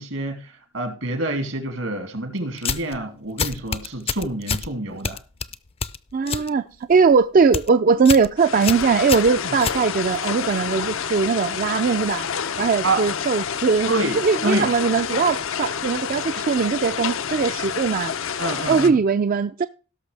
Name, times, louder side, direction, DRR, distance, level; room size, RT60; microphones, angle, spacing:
voice 1, 0.0-5.2 9.4-9.6 12.8-13.0 13.9-14.2 14.4-14.7 18.4-19.0, right 2 dB, 80° right, 2.5 m, -27 dB
sound 1, 2.6-3.0 3.4-4.7 5.0-6.5 6.8-7.1 7.4-7.7 8.1-8.3 8.6-10.2, left 6 dB, 30° left, 0.5 m, -27 dB
voice 2, 6.1-12.3 12.6-18.1 18.7-19.7, right 5 dB, 45° right, 0.4 m, -20 dB
sound 2, 8.4-18.9, left 7 dB, 80° left, 0.7 m, -28 dB
17.5 x 6.3 x 3.3 m
head